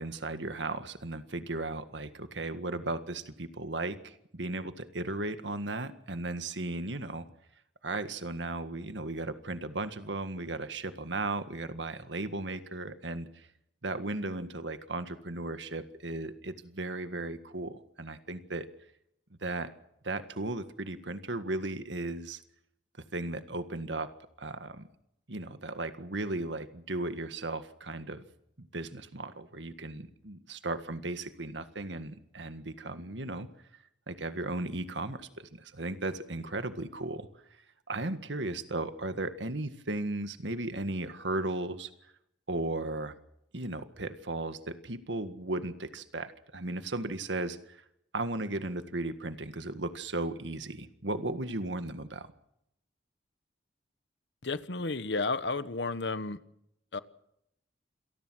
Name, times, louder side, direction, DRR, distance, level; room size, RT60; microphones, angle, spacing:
voice 1, 0.0-7.3 7.8-13.5 13.8-18.7 19.4-19.7 20.0-22.4 23.1-24.1 24.4-24.8 25.3-28.2 28.7-33.5 34.1-37.3 37.9-41.9 42.5-43.1 43.5-47.8 48.1-52.3, right 2 dB, 85° right, 10 dB, 1.8 m, -36 dB
voice 2, 54.4-56.4 56.9-57.0, left 3 dB, 70° left, 14 dB, 1.3 m, -32 dB
27.5 x 19.0 x 6.3 m, 0.78 s
head